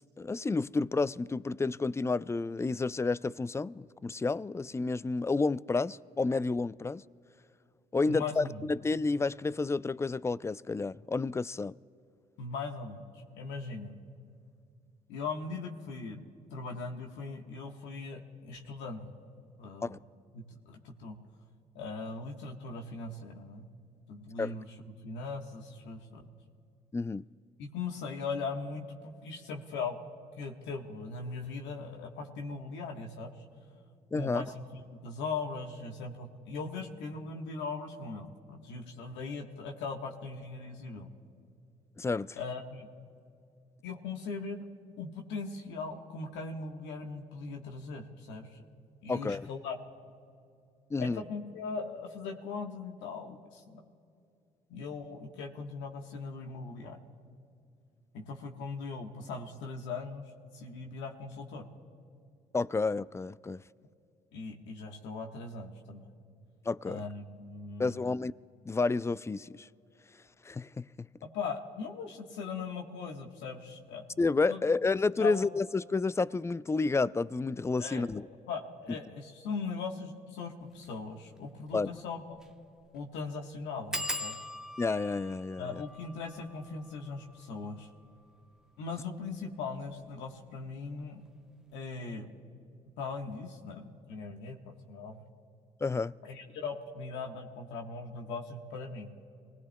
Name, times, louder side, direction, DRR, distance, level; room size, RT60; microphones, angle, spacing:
voice 1, 0.2-7.0 7.9-11.7 19.8-20.0 24.4-24.6 26.9-27.2 34.1-34.4 42.0-42.4 49.1-49.5 50.9-51.2 62.5-63.6 66.7-67.0 67.8-68.3 68.7-69.7 70.4-71.1 74.2-78.3 81.7-81.9 84.8-85.8 95.8-96.1, left 3 dB, 15° left, 0.4 m, -30 dB
voice 2, 8.1-8.7 12.4-14.0 15.1-16.3 16.5-19.2 19.6-20.0 20.3-21.2 21.7-23.7 24.1-24.7 25.0-26.2 27.6-30.0 30.4-33.3 34.1-41.1 42.4-42.9 43.8-44.6 45.0-48.6 49.0-49.8 51.0-53.8 54.7-57.0 58.1-60.2 60.5-61.7 64.3-66.1 66.9-68.0 71.3-74.0 74.5-74.6 75.2-75.5 77.8-78.1 78.5-82.4 82.9-84.4 85.6-87.9 88.8-91.2 91.7-92.3 93.0-95.2 96.2-99.1, left 4 dB, 75° left, 1.3 m, -39 dB
sound 1, 80.7-80.9 81.4-81.5 81.7-81.8 82.3-82.6 82.8-82.9 83.9-89.2 89.9-90.4 90.7-91.1 91.3-91.4, equal, 5° right, 0.9 m, -42 dB
27.5 x 18.0 x 2.2 m
hypercardioid pair, 45°, 19 cm